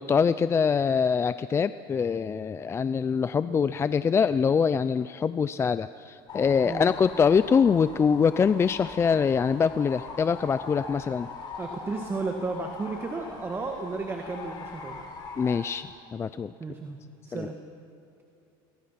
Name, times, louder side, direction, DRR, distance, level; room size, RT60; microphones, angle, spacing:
voice 1, 0.0-11.3 15.4-16.5 17.3-17.5, left 6 dB, 25° left, 14 dB, 0.5 m, -24 dB
sound 1, 6.3-15.6, left 4 dB, 40° left, 5.4 m, -42 dB
voice 2, 11.6-15.0 16.6-17.0 17.3-17.6, right 3 dB, 20° right, 3 dB, 1.8 m, -33 dB
27.5 x 24.0 x 5.9 m, 2.7 s
supercardioid pair, 120°, 11 cm